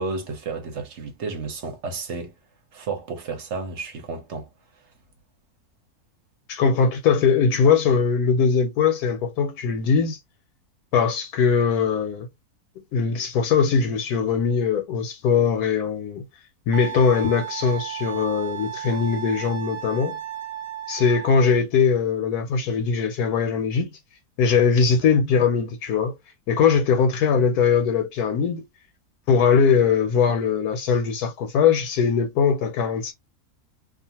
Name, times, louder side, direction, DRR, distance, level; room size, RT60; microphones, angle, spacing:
voice 1, 0.0-2.3 2.7-4.5, right 4 dB, 55° right, 0.9 m, -32 dB
voice 2, 6.5-10.2 10.9-12.3 12.9-16.2 16.7-20.2 20.9-23.9 24.4-26.1 26.5-28.6 29.3-33.1, left 6 dB, 80° left, 1.1 m, -21 dB
Wind instrument woodwind instrument, 16.7-21.6, right 10 dB, 85° right, 1.2 m, -34 dB
2.4 x 2.4 x 2.8 m
omnidirectional pair, 1.7 m